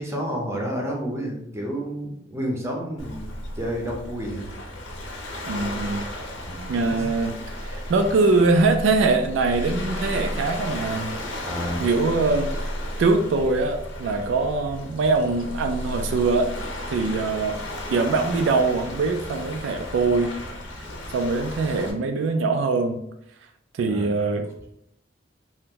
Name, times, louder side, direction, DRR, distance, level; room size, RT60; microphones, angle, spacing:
voice 1, 0.0-4.5 6.4-7.0 11.4-11.9 23.9-24.1, equal, 15° right, -1 dB, 0.6 m, -30 dB
Waves surf, 3.0-21.9, left 1 dB, 75° left, 0.7 m, -34 dB
voice 2, 5.5-6.0 6.7-7.4 7.6-11.1 11.8-12.7 13.0-16.5 16.9-17.6 17.9-20.4 21.1-23.0 23.7-24.5, right 3 dB, 65° right, 5 dB, 0.3 m, -22 dB
2.8 x 2.1 x 3.6 m, 0.75 s
head